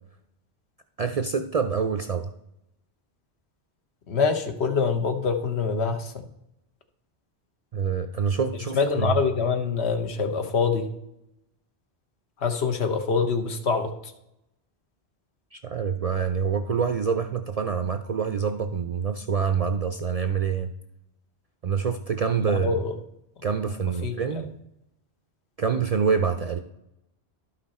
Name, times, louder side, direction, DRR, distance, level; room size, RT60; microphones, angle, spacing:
voice 1, 1.0-2.3 7.7-9.2 15.5-20.7 21.6-22.8 23.4-24.5 25.6-26.6, right 6 dB, 55° right, 8 dB, 0.4 m, -26 dB
voice 2, 4.1-6.2 8.7-10.9 12.4-13.9 22.4-22.9 24.0-24.1, left 5 dB, 75° left, 6 dB, 1.2 m, -25 dB
11.5 x 5.8 x 4.2 m, 0.84 s
omnidirectional pair, 1.1 m